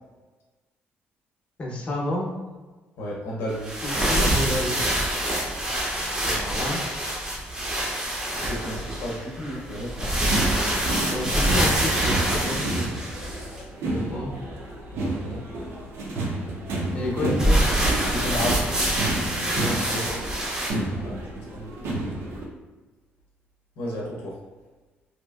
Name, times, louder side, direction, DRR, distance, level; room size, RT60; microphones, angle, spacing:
voice 1, 1.6-2.3 3.8-4.8 6.2-6.8 11.1-12.9 13.8-14.3 16.9-17.6 19.6-20.2, left 1 dB, 30° left, -3 dB, 0.7 m, -30 dB
voice 2, 3.0-4.5 8.4-10.1 14.9-15.7 17.0-17.4 18.1-18.8 21.0-21.7 23.8-24.4, equal, 75° left, -3 dB, 0.6 m, -33 dB
sound 1, 3.5-13.6 17.4-20.7, right 1 dB, 15° right, 0.5 m, -25 dB
sound 2, 10.3-22.4, right 2 dB, 70° right, 0.5 m, -31 dB
2.8 x 2.5 x 2.3 m, 1.3 s
cardioid pair, 160°, 4 cm